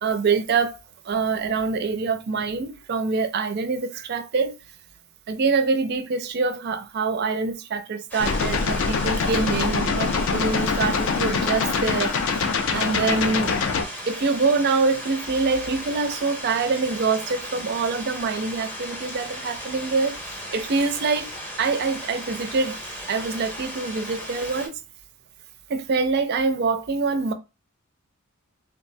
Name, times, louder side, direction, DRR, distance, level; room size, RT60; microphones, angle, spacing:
voice 1, 0.0-0.8 1.0-4.5 5.3-12.4 12.7-13.5 14.1-20.1 20.5-21.3 21.6-24.8 25.7-27.3, right 4 dB, 45° right, 0.4 m, -25 dB
sound 1, 8.1-24.7, equal, 10° left, 0.6 m, -36 dB
sound 2, 8.2-13.8, left 5 dB, 60° left, 0.3 m, -24 dB
3.3 x 2.0 x 2.5 m
head